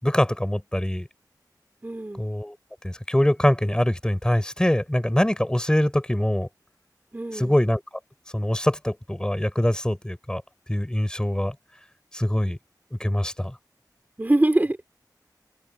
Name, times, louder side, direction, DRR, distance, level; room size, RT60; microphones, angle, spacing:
voice 1, 0.0-1.1 2.2-2.6 2.8-6.5 7.3-7.8 8.3-10.4 10.7-11.5 12.1-12.6 13.0-13.6, left 1 dB, 10° left, 4.3 m, -23 dB
voice 2, 1.8-2.2 7.1-7.6 14.2-14.9, right 1 dB, 25° right, 3.3 m, -23 dB
open air
wide cardioid pair, 85°, 7 cm